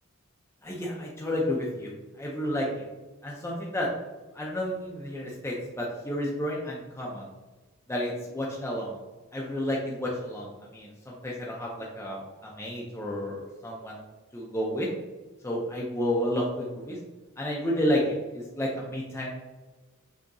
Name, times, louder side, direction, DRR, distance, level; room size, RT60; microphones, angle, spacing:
voice 1, 0.6-1.9 2.2-2.8 3.2-3.9 4.3-7.3 7.9-9.0 9.3-14.0 14.3-14.9 15.4-17.0 17.4-18.0 18.3-19.3, equal, 10° left, -4 dB, 0.5 m, -31 dB
6.0 x 2.8 x 2.6 m, 1.2 s
head